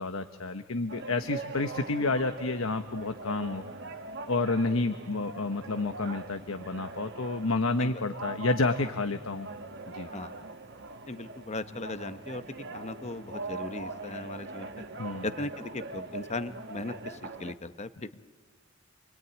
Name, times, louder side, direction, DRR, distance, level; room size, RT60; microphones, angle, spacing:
voice 1, 0.0-3.6 4.3-9.5 9.9-10.1 15.0-15.3, left 3 dB, 80° left, 8 dB, 1.1 m, -30 dB
sound 1, 0.9-17.5, right 3 dB, 55° right, 1.6 m, -42 dB
voice 2, 10.1-10.4 11.1-12.4 12.7-14.8 15.2-18.2, left 2 dB, 35° left, 12 dB, 0.9 m, -38 dB
28.5 x 22.5 x 9.3 m, 1.4 s
head